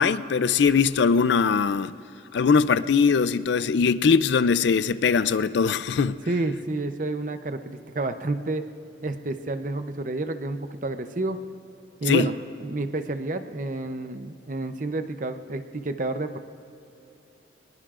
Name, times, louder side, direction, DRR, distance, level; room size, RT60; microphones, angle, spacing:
voice 1, 0.0-1.9 2.3-6.2 12.1-12.3, left 5 dB, 70° left, 15 dB, 0.4 m, -21 dB
voice 2, 6.3-8.6 9.0-11.4 12.0-16.4, right 2 dB, 45° right, 9 dB, 0.7 m, -29 dB
24.0 x 20.5 x 2.5 m, 3.0 s
head